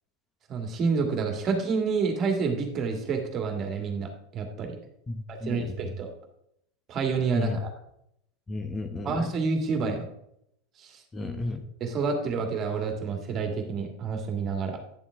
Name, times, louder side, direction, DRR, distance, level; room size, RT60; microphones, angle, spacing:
voice 1, 0.5-4.8 5.3-6.1 6.9-7.7 9.0-10.1 10.8-11.0 11.8-14.8, right 4 dB, 35° right, 4 dB, 2.1 m, -28 dB
voice 2, 5.1-5.7 7.3-7.6 8.5-9.2 11.1-11.6, left 2 dB, 20° left, 6 dB, 1.0 m, -33 dB
10.5 x 7.1 x 3.6 m, 0.75 s
hypercardioid pair, 90°, 0 cm